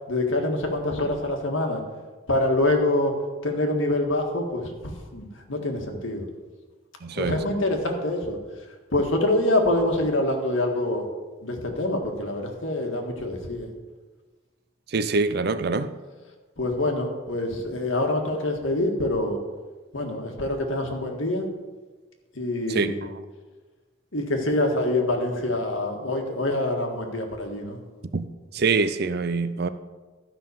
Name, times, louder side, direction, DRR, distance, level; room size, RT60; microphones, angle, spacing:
voice 1, 0.1-1.8 2.3-3.2 3.4-6.3 7.2-8.4 8.9-11.1 11.4-13.7 16.6-19.4 19.9-21.5 22.4-23.0 24.1-27.8, left 1 dB, 75° left, 1.8 m, -25 dB
voice 2, 7.0-7.4 14.9-15.9 22.7-22.9 28.1-28.3 28.5-29.7, right 4 dB, 50° right, 0.5 m, -24 dB
12.5 x 5.7 x 6.9 m
head